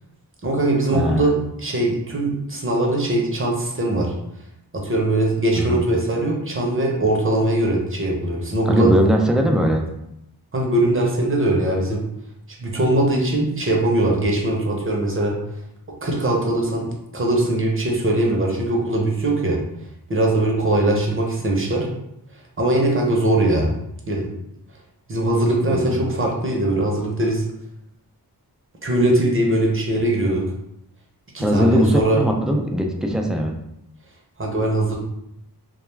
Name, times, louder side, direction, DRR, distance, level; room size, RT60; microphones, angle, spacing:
voice 1, 0.4-4.1 4.7-8.9 10.5-12.0 12.6-15.4 16.0-19.6 20.1-21.9 22.6-23.7 24.1-24.3 25.1-27.5 28.8-30.4 31.3-32.2 34.4-34.9, right 1 dB, 35° right, -1 dB, 0.7 m, -21 dB
voice 2, 0.9-1.3 5.5-5.8 8.7-9.9 25.7-25.9 31.4-33.6, equal, ahead, 2 dB, 0.3 m, -19 dB
2.3 x 2.2 x 3.1 m, 0.80 s
wide cardioid pair, 60°, 39 cm